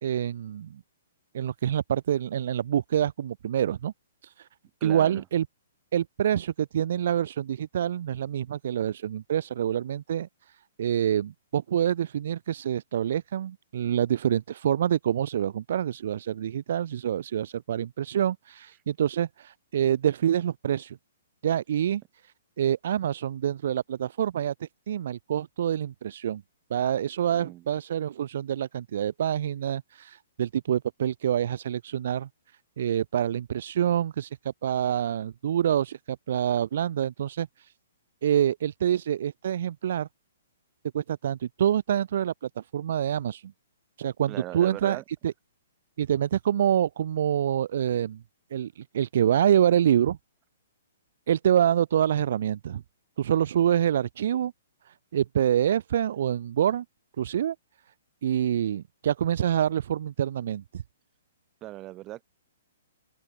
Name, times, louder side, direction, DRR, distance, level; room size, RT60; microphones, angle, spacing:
voice 1, 0.0-0.8 1.3-3.9 4.2-4.5 4.8-5.5 5.9-21.0 21.4-22.0 22.6-26.4 26.7-32.3 32.8-34.4 34.6-37.7 38.2-40.1 40.9-43.5 44.0-45.3 46.0-48.2 48.5-50.2 51.3-52.8 53.2-54.5 54.9-56.8 57.2-57.6 58.2-60.8, right 10 dB, 55° right, 0.5 m, -26 dB
voice 2, 4.8-5.2 27.3-27.7 44.3-45.0 61.6-62.2, right 16 dB, 25° right, 2.9 m, -38 dB
figure-of-eight pair, 125°, 0 cm